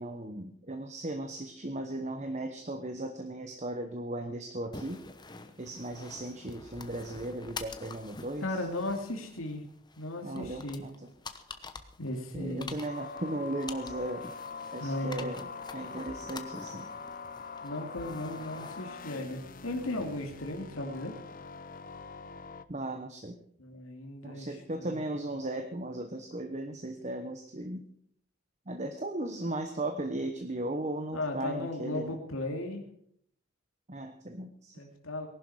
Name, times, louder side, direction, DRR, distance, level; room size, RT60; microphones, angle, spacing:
voice 1, 0.0-5.0 5.6-8.5 10.2-10.9 12.3-14.2 14.7-15.5 15.7-16.9 22.7-23.4 24.2-27.8 28.7-32.1 33.9-34.8, right 1 dB, 35° right, 7 dB, 1.0 m, -36 dB
sound 1, 4.7-20.5, left 4 dB, 20° left, 1.0 m, -48 dB
voice 2, 8.4-9.6 10.0-10.8 12.0-12.8 14.8-15.3 17.6-21.1 23.6-25.0 31.1-32.8 34.7-35.3, left 1 dB, 80° left, 3 dB, 2.5 m, -36 dB
sound 2, 12.8-22.6, left 5 dB, 40° left, 0.7 m, -44 dB
19.0 x 11.5 x 4.8 m, 0.66 s
head